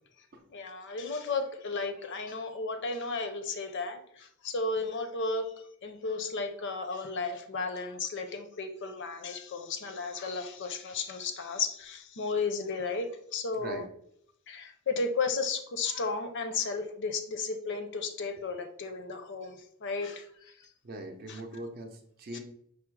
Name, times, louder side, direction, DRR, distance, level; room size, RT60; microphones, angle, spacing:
voice 1, 0.5-5.5 5.8-13.8 14.5-20.7 21.3-21.4 22.3-22.4, left 4 dB, 55° left, 7 dB, 0.6 m, -34 dB
voice 2, 20.8-22.4, right 1 dB, 45° right, 3 dB, 0.6 m, -41 dB
4.9 x 2.0 x 4.6 m, 0.70 s
head